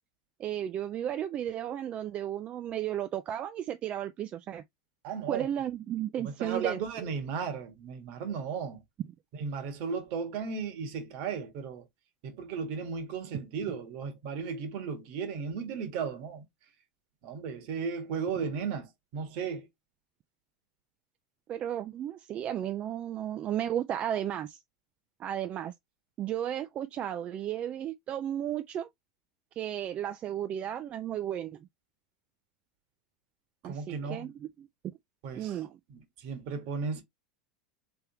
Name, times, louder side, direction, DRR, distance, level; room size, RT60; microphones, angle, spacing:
voice 1, 0.4-4.6 5.3-6.8 21.5-24.6 25.2-25.7 26.2-28.9 29.6-31.6 33.6-34.7 35.4-35.8, right 10 dB, 40° right, 0.4 m, -34 dB
voice 2, 5.0-5.5 6.2-8.8 9.4-11.8 12.2-16.4 17.2-18.9 19.1-19.7 33.6-34.3 35.2-35.5 35.9-37.0, right 6 dB, 60° right, 1.4 m, -35 dB
3.5 x 3.4 x 2.8 m
hypercardioid pair, 100°, 4 cm